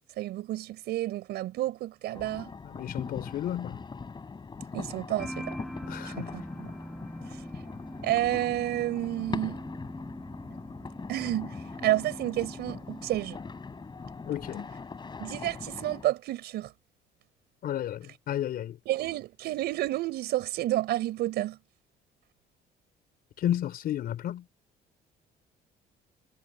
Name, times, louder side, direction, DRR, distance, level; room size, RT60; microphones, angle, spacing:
voice 1, 0.2-2.5 4.7-5.5 6.0-6.7 7.3-7.4 8.0-9.6 11.1-13.4 15.2-16.7 18.9-21.6, right 15 dB, 75° right, 5.5 m, -30 dB
sound 1, 2.1-16.0, left 4 dB, 25° left, 5.4 m, -41 dB
voice 2, 2.6-3.8 5.9-6.4 14.3-14.7 17.6-18.8 23.4-24.4, left 11 dB, 65° left, 4.5 m, -32 dB
sound 2, 5.2-14.7, equal, ahead, 7.2 m, -43 dB
cardioid pair, 110°, 17 cm